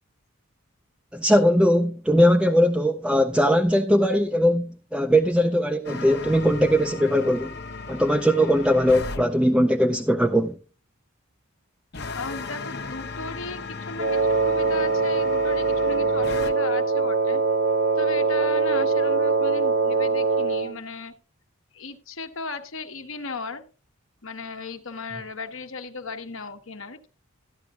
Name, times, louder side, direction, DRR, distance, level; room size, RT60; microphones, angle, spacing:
voice 1, 1.1-7.6 7.9-10.5, equal, 5° right, 0.4 m, -20 dB
sound 1, 5.8-9.2 11.9-16.5, left 3 dB, 50° left, 0.9 m, -36 dB
voice 2, 12.1-17.4 18.0-21.1 21.7-23.6 24.2-27.1, left 3 dB, 65° left, 1.2 m, -36 dB
Wind instrument woodwind instrument, 14.0-20.8, right 4 dB, 50° right, 0.8 m, -22 dB
13.5 x 10.5 x 2.4 m
head